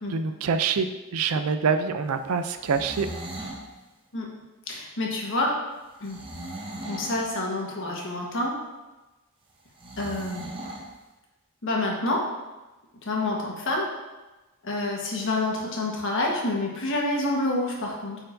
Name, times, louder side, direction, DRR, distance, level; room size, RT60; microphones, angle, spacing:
voice 1, 0.1-3.1, right 5 dB, 75° right, 9 dB, 0.4 m, -26 dB
sound 1, 2.4-3.6 6.0-7.3 9.8-10.9, right 1 dB, 25° right, 0.9 m, -38 dB
voice 2, 4.7-5.6 6.0-6.2 6.9-8.5 10.0-10.4 11.6-12.2 13.0-13.9 14.6-18.2, left 2 dB, 60° left, -1 dB, 1.3 m, -28 dB
8.8 x 4.6 x 2.6 m, 1.1 s
head